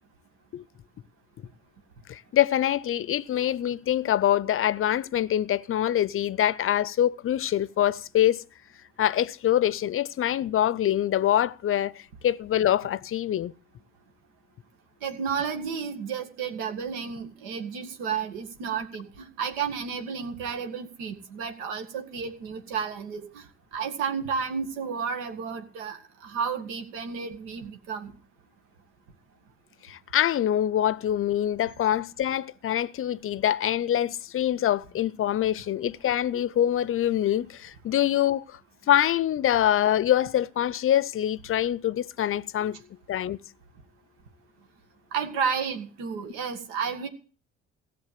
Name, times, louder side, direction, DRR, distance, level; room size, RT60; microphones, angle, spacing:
voice 1, 2.1-8.4 9.0-13.5 29.8-38.6 38.9-42.8 43.1-43.4, left 11 dB, 45° left, 0.6 m, -25 dB
voice 2, 15.0-23.5 23.7-28.2 45.1-47.1, right 6 dB, 80° right, 1.9 m, -32 dB
15.5 x 7.2 x 7.5 m
hypercardioid pair, 60°, 30 cm